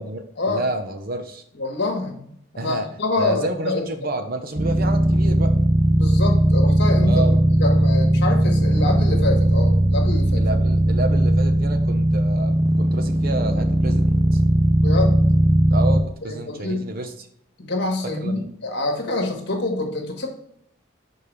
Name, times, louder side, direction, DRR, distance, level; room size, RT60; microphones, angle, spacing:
voice 1, 0.0-1.4 2.6-2.9 3.2-5.5 7.0-7.4 10.4-14.4 15.7-17.3 18.0-18.5, right 2 dB, 45° right, 6 dB, 0.8 m, -30 dB
voice 2, 1.6-3.8 5.9-7.2 7.6-10.4 14.6-15.3 16.3-16.9 17.6-20.3, left 2 dB, 55° left, 3 dB, 1.4 m, -26 dB
sound 1, 4.6-16.0, right 1 dB, 15° right, 0.4 m, -18 dB
6.7 x 4.3 x 3.3 m, 0.69 s
head